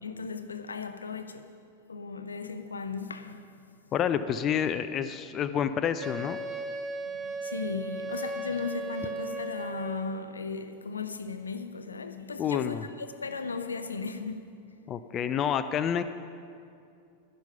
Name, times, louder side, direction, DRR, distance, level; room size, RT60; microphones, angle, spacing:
voice 1, 0.0-1.5 1.9-3.7 7.1-15.0, left 4 dB, 75° left, 0.6 m, -37 dB
voice 2, 3.9-6.4 12.4-12.9 14.9-16.0, left 8 dB, 30° left, 0.4 m, -28 dB
Wind instrument woodwind instrument, 6.0-10.1, right 2 dB, 15° right, 0.8 m, -36 dB
11.5 x 10.5 x 5.6 m
figure-of-eight pair, 90°, 0 cm